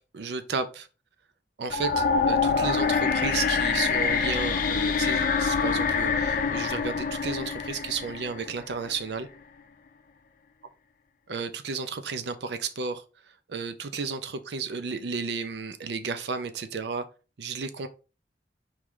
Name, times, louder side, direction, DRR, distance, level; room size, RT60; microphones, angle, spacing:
voice 1, 0.1-0.9 1.6-9.3 11.3-13.0 13.5-17.1 17.4-17.9, right 5 dB, 70° right, 0.5 m, -33 dB
sound 1, 1.7-8.8, left 5 dB, 50° left, 0.4 m, -25 dB
4.6 x 3.1 x 3.7 m
head